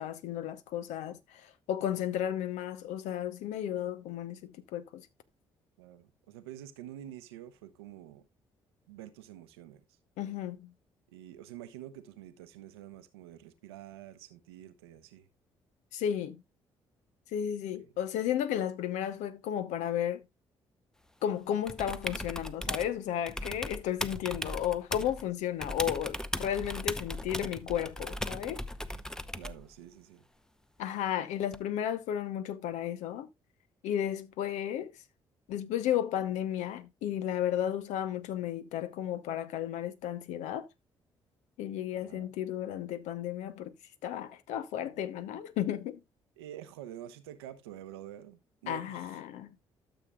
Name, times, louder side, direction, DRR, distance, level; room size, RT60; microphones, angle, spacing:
voice 1, 0.0-5.1 10.2-10.7 15.9-16.4 17.3-20.2 21.2-28.6 30.8-33.3 33.8-34.9 35.5-40.7 41.6-43.7 44.0-46.0 48.7-49.5, left 10 dB, 70° left, 0.8 m, -33 dB
voice 2, 5.8-8.3 8.9-9.8 11.1-15.3 17.8-17.9 29.3-30.2 41.9-42.3 46.4-49.2, right 12 dB, 85° right, 0.8 m, -48 dB
sound 1, 21.7-22.9 23.3-25.2 25.6-29.6 31.5-31.6, left 1 dB, 5° left, 0.7 m, -37 dB
12.5 x 7.0 x 2.3 m
hypercardioid pair, 45°, 13 cm